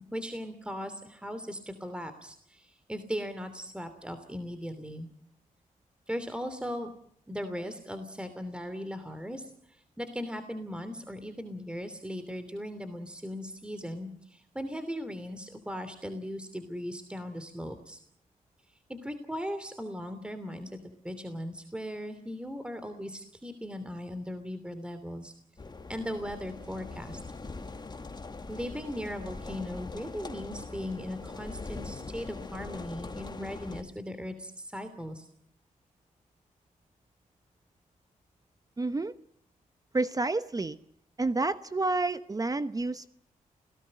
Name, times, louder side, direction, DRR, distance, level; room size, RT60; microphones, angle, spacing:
voice 1, 0.1-5.1 6.1-6.9 7.3-18.0 18.9-25.3 25.9-27.2 28.5-35.3, equal, 5° right, 10 dB, 2.9 m, -38 dB
sound 1, 25.6-33.8, left 3 dB, 30° left, 2.3 m, -42 dB
voice 2, 38.8-39.1 39.9-40.8 41.2-43.1, right 3 dB, 25° right, 12 dB, 1.0 m, -29 dB
28.5 x 18.0 x 7.7 m, 0.70 s
cardioid pair, 75°, 14 cm